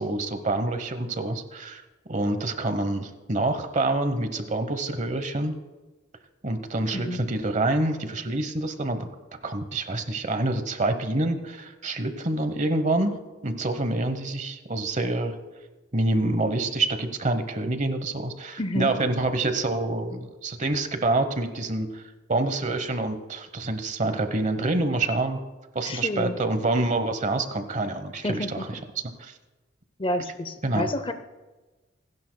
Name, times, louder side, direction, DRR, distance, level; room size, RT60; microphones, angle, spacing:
voice 1, 0.0-1.8 2.1-5.5 6.4-9.1 9.4-15.4 15.9-22.0 22.3-25.4 25.7-28.8 29.2-29.3 30.6-30.9, right 2 dB, 40° right, 9 dB, 1.0 m, -27 dB
voice 2, 18.6-18.9 25.9-26.3 28.2-28.7 30.0-31.1, left 1 dB, 30° left, 10 dB, 0.6 m, -29 dB
27.5 x 11.0 x 2.2 m, 1.2 s
head